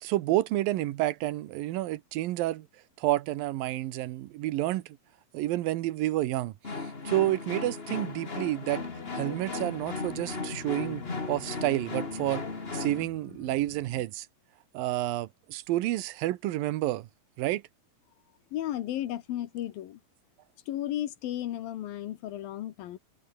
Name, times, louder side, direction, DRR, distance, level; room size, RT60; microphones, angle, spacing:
voice 1, 0.0-2.7 3.0-4.8 5.3-6.5 7.1-8.9 9.1-11.0 11.3-12.4 12.7-14.3 14.7-17.1 17.4-17.6, right 15 dB, 80° right, 2.7 m, -29 dB
sound 1, 6.6-13.0, left 3 dB, 25° left, 1.6 m, -36 dB
sound 2, 8.8-14.1, left 9 dB, 55° left, 3.2 m, -48 dB
voice 2, 18.5-20.0 20.7-23.0, left 12 dB, 80° left, 3.2 m, -34 dB
omnidirectional pair, 4.1 m